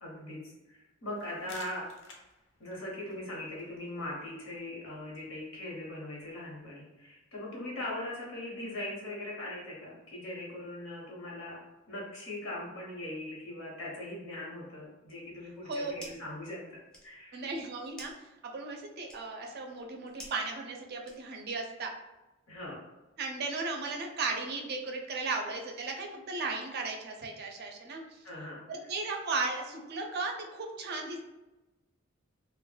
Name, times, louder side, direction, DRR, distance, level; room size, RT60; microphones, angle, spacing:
voice 1, 0.0-1.9 2.6-11.6 11.9-17.4 22.5-22.8 28.2-28.6, left 1 dB, 85° left, -3 dB, 0.9 m, -40 dB
sound 1, 1.2-6.7, left 3 dB, 65° left, 0.5 m, -57 dB
sound 2, 15.5-16.4 16.7-21.6, equal, 5° left, 0.5 m, -53 dB
voice 2, 15.7-16.0 17.3-21.9 23.2-28.2 28.7-31.2, right 3 dB, 50° right, 2 dB, 0.4 m, -36 dB
2.2 x 2.0 x 3.1 m, 1.0 s
head